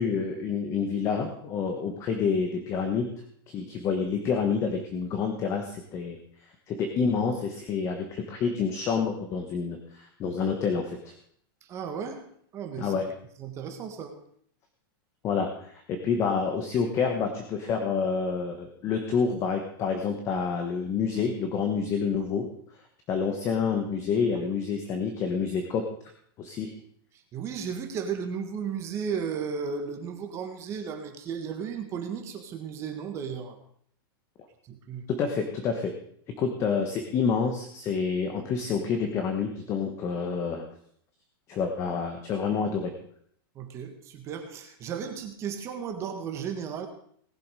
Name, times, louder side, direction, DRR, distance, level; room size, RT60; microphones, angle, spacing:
voice 1, 0.0-3.1 3.5-6.2 6.7-11.1 12.8-13.1 15.2-22.5 23.1-25.8 26.4-26.7 35.2-35.9 36.4-40.6 41.5-42.9, left 5 dB, 25° left, 4 dB, 1.3 m, -28 dB
voice 2, 11.6-12.2 12.5-12.9 13.4-14.1 27.3-33.6 34.7-35.0 43.5-46.9, right 6 dB, 25° right, 6 dB, 1.4 m, -34 dB
18.5 x 7.1 x 4.9 m, 0.64 s
supercardioid pair, 165°, 12 cm